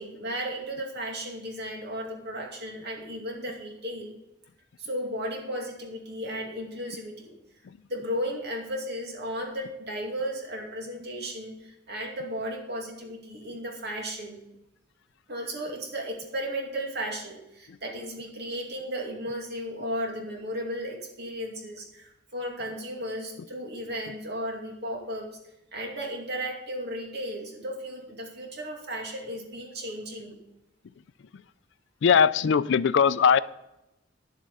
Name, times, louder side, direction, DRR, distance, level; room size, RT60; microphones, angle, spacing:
voice 1, 0.0-4.2 4.8-7.3 7.9-14.4 15.3-25.3 25.7-30.4, equal, 60° right, 1 dB, 2.4 m, -35 dB
voice 2, 32.0-33.4, left 6 dB, 65° left, 14 dB, 0.4 m, -20 dB
10.0 x 8.3 x 5.4 m, 0.91 s
head